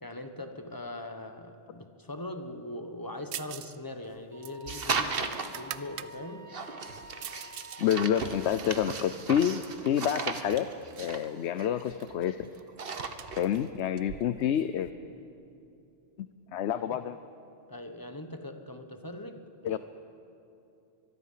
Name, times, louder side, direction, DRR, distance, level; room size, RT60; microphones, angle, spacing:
voice 1, 0.0-6.5 16.7-17.0 17.7-19.8, left 1 dB, 20° left, 6 dB, 1.3 m, -41 dB
sound 1, 3.3-3.8 4.0-6.1 6.6-7.8 8.2-9.9 10.6-11.1 11.4-11.5 11.8-14.9, right 10 dB, 85° right, 1.0 m, -45 dB
Wind instrument woodwind instrument, 4.3-8.5, equal, 60° left, 4.1 m, -50 dB
sound 2, 4.7-5.6 6.5-12.3 12.6-13.6, right 5 dB, 60° right, 1.3 m, -36 dB
voice 2, 7.8-10.7 11.0-12.5 13.3-14.9 16.2-16.3 16.5-17.2 19.6-19.8, left 9 dB, 85° left, 12 dB, 0.9 m, -28 dB
24.0 x 22.0 x 5.7 m, 2.7 s
omnidirectional pair, 1.1 m